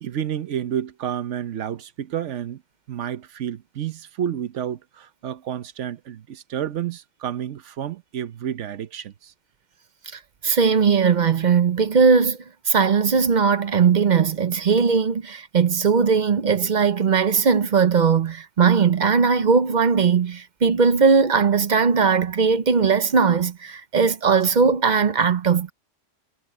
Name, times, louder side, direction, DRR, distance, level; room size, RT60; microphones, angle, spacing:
voice 1, 0.0-2.6 2.9-9.3, right 9 dB, 85° right, 1.1 m, -30 dB
voice 2, 10.1-12.4 12.7-25.7, right 5 dB, 45° right, 0.7 m, -19 dB
omnidirectional pair, 1.2 m